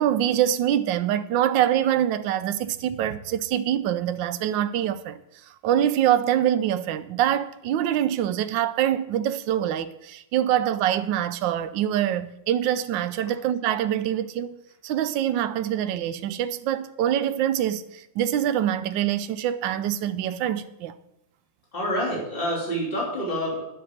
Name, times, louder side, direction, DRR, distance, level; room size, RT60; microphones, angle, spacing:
voice 1, 0.0-20.9, right 11 dB, 80° right, 1.3 m, -25 dB
voice 2, 21.7-23.6, equal, 25° left, 3.6 m, -27 dB
10.0 x 6.2 x 7.8 m
omnidirectional pair, 2.1 m